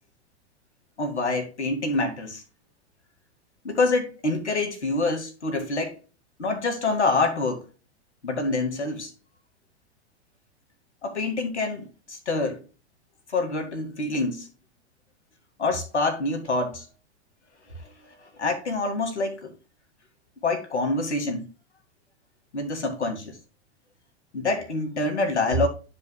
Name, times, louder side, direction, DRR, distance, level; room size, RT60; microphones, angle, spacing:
voice 1, 1.0-2.4 3.6-5.9 6.4-7.6 8.2-9.1 11.0-12.6 13.3-14.5 15.6-16.8 18.4-19.5 20.4-21.5 22.5-23.4 24.3-25.7, left 2 dB, 90° left, 2.0 m, -26 dB
12.0 x 4.8 x 2.2 m
hypercardioid pair, 105°, 33 cm